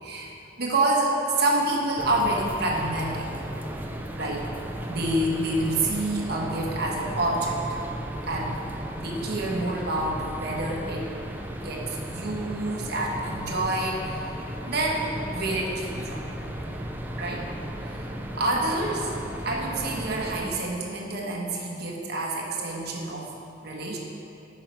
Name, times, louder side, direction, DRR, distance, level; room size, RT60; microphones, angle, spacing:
voice 1, 0.0-3.3 4.1-4.5 4.9-7.8 8.2-8.5 8.9-11.1 11.6-14.3 14.6-16.2 17.2-17.5 17.8-19.1 19.4-23.3 23.6-24.0, right 2 dB, 55° right, -2 dB, 1.2 m, -28 dB
sound 1, 2.0-20.5, right 1 dB, 10° right, 0.4 m, -35 dB
9.6 x 5.5 x 4.5 m, 2.7 s
head